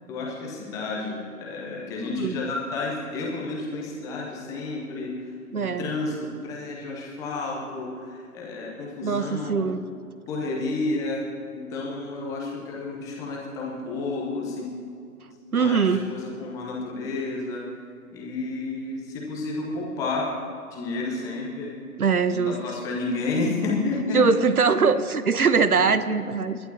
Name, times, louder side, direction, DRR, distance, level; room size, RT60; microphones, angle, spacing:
voice 1, 0.1-5.2 5.5-9.7 10.3-11.3 11.5-14.7 15.5-17.6 18.1-20.3 20.7-21.8 22.3-24.2 24.7-24.8 25.8-25.9, left 3 dB, 5° left, -3 dB, 1.0 m, -31 dB
voice 2, 5.5-5.9 9.0-9.8 15.5-16.0 22.0-22.6 24.1-26.6, right 5 dB, 70° right, 13 dB, 0.9 m, -22 dB
29.5 x 11.5 x 2.8 m, 2.5 s
figure-of-eight pair, 140°, 45 cm